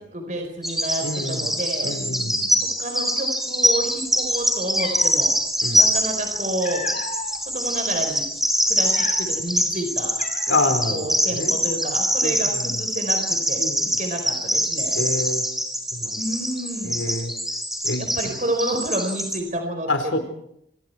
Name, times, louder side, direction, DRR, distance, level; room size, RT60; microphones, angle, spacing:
voice 1, 0.1-1.9 2.6-5.3 5.7-6.9 7.5-8.2 8.7-10.1 10.9-13.6 14.0-15.0 16.2-17.0 18.0-20.2, right 1 dB, 40° right, 4 dB, 4.7 m, -29 dB
Bird vocalization bird call bird song, 0.6-19.4, equal, ahead, 3.5 m, -24 dB
voice 2, 1.0-1.5 1.8-2.6 5.6-5.8 10.5-11.6 12.2-12.7 13.6-13.8 14.9-15.4 15.9-16.1 16.8-17.3 17.8-18.4 19.9-20.2, left 2 dB, 85° left, 7 dB, 4.7 m, -27 dB
Cat, 4.2-4.3 4.7-5.2 6.2-7.4 7.9-8.1 8.7-9.5 9.8-9.9 10.2-10.8, left 4 dB, 40° left, 3.2 m, -34 dB
28.5 x 26.5 x 4.7 m, 0.75 s
head